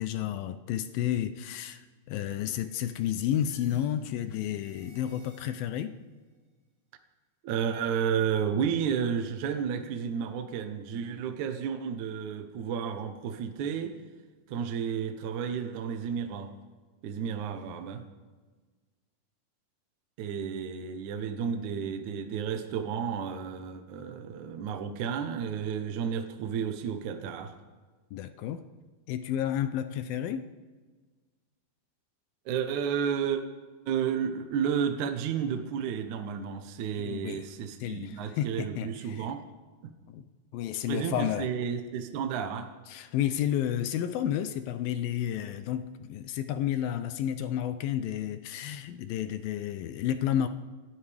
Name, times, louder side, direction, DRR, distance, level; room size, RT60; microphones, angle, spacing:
voice 1, 0.0-5.9 28.1-28.6 29.1-30.5 36.9-37.5 37.8-39.3 40.1-40.3 40.5-41.5 42.9-50.5, left 10 dB, 80° left, 2.2 m, -31 dB
sound 1, 2.6-5.9, right 2 dB, 50° right, 5.3 m, -60 dB
voice 2, 7.4-14.0 14.5-16.5 17.0-18.0 20.2-27.5 32.5-33.4 33.9-39.4 40.9-42.7, right 7 dB, 70° right, 2.0 m, -32 dB
27.0 x 13.0 x 3.5 m
omnidirectional pair, 4.8 m